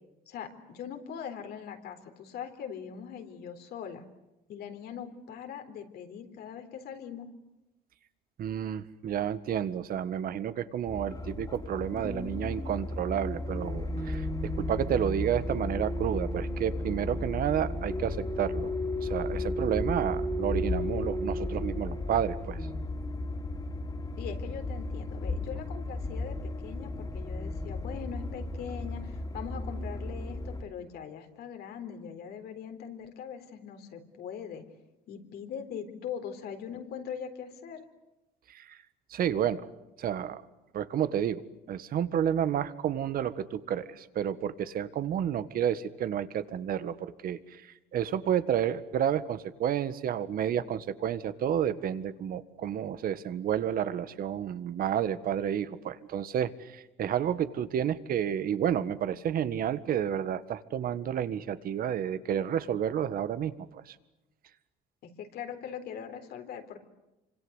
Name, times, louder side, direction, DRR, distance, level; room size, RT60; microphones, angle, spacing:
voice 1, 0.3-4.0 4.5-7.3 24.2-34.6 35.1-37.8 65.0-66.8, left 8 dB, 70° left, 5 dB, 4.0 m, -41 dB
voice 2, 8.4-18.7 19.0-22.7 38.5-38.8 39.1-39.7 40.0-40.4 40.7-41.4 41.7-64.0, right 9 dB, 60° right, 13 dB, 1.7 m, -30 dB
sound 1, 10.9-30.6, left 1 dB, 20° left, 3.3 m, -34 dB
27.5 x 25.5 x 8.2 m, 0.95 s
cardioid pair, 110°, 17 cm